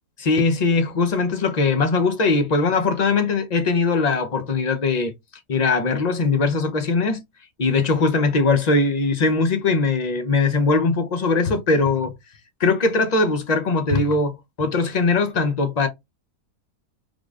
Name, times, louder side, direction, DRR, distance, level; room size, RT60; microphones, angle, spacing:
voice 1, 0.2-5.1 5.5-7.2 7.6-12.1 12.6-15.9, left 3 dB, 55° left, 0.4 m, -20 dB
3.9 x 3.1 x 2.4 m
omnidirectional pair, 1.7 m